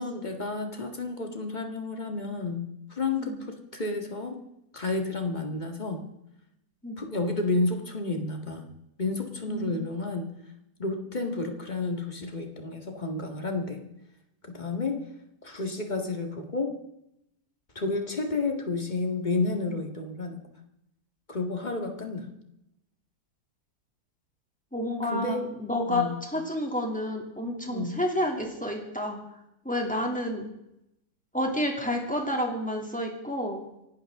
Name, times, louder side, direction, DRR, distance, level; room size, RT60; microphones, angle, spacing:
voice 1, 0.0-4.4 4.7-6.0 7.0-8.7 9.0-10.3 10.8-13.8 14.4-15.1 15.4-16.8 17.8-20.4 21.3-22.3 25.1-25.5 25.9-26.1 27.7-27.9, left 3 dB, 25° left, 4 dB, 1.9 m, -31 dB
voice 2, 24.7-29.2 29.6-30.5 31.3-33.6, left 1 dB, 5° left, 1 dB, 2.7 m, -30 dB
26.5 x 12.0 x 3.7 m, 0.85 s
omnidirectional pair, 1.8 m